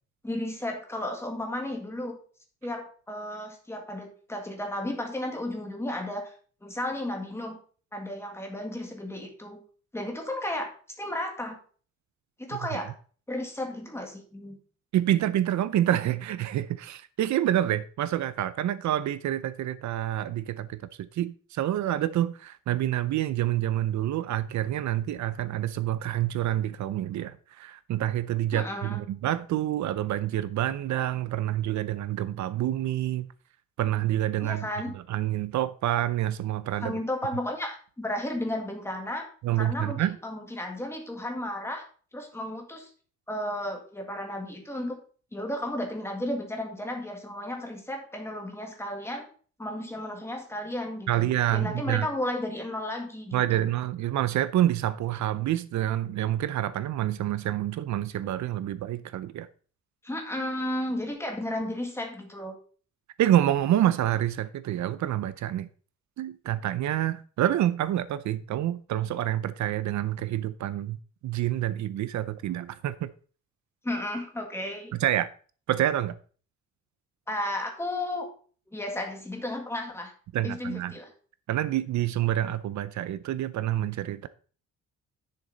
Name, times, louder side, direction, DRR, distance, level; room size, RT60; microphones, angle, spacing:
voice 1, 0.2-2.2 2.6-6.3 6.6-7.6 7.9-9.6 9.9-10.7 11.0-11.6 12.4-12.9 13.3-14.6 28.5-29.0 34.4-34.9 36.8-39.3 39.6-41.8 42.1-42.9 43.3-45.0 45.3-49.3 49.6-53.7 60.0-62.6 73.8-74.9 77.3-78.3 78.7-80.1 80.4-81.1, left 1 dB, 10° left, 1.9 m, -33 dB
voice 2, 14.9-33.3 33.8-34.7 34.9-37.0 39.4-40.2 51.1-52.1 53.3-59.5 63.2-65.7 66.2-71.0 71.2-73.1 74.9-75.3 75.7-76.2 80.3-81.0 81.5-84.3, right 12 dB, 70° right, 0.6 m, -27 dB
10.5 x 6.6 x 4.0 m
cardioid pair, 150°, 30 cm